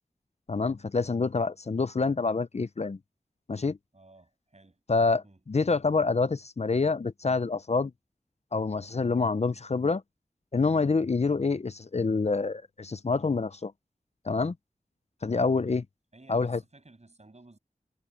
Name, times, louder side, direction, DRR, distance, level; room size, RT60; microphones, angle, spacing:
voice 1, 0.5-3.0 3.5-3.8 4.9-7.9 8.5-10.0 10.5-13.7 14.2-14.5 15.2-15.8 16.3-16.6, left 4 dB, 45° left, 0.5 m, -27 dB
voice 2, 3.9-4.8 5.2-5.4 15.7-15.8 16.1-17.6, right 2 dB, 45° right, 7.0 m, -55 dB
wide cardioid pair, 60°, 15 cm